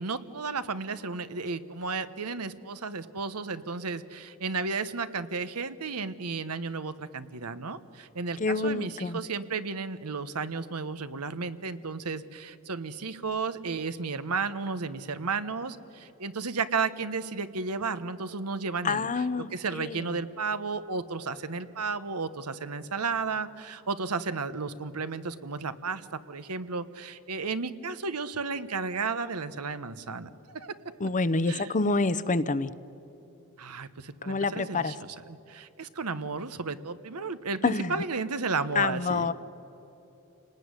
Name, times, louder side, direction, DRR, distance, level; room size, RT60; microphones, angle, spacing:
voice 1, 0.0-19.3 19.5-30.9 31.5-31.7 33.6-39.3, right 4 dB, 90° right, 12 dB, 1.1 m, -33 dB
voice 2, 8.4-9.2 18.8-19.9 31.0-32.7 34.3-34.9 37.6-37.9 38.8-39.3, left 3 dB, 35° left, 15 dB, 0.8 m, -27 dB
29.0 x 19.0 x 9.8 m, 3.0 s
head